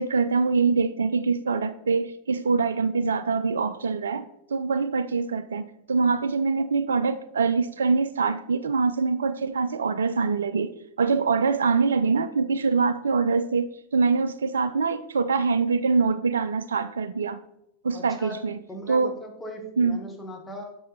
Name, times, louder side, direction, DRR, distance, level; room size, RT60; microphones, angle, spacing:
voice 1, 0.0-10.7 11.0-17.4 17.8-18.6 18.9-19.1 19.8-20.0, right 4 dB, 70° right, 0.3 m, -24 dB
voice 2, 17.9-18.4 18.7-20.6, equal, 10° left, 1.4 m, -39 dB
7.4 x 6.2 x 4.2 m
figure-of-eight pair, 90°, 0 cm